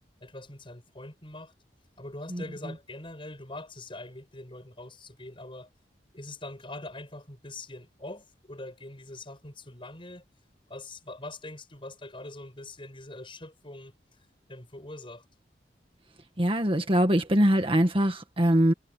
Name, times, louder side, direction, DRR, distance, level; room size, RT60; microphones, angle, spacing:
voice 1, 0.2-1.5 2.0-5.7 6.1-10.2 10.7-13.9 14.5-15.2, left 2 dB, 30° left, 7.9 m, -43 dB
voice 2, 16.4-18.7, equal, 30° right, 1.8 m, -23 dB
head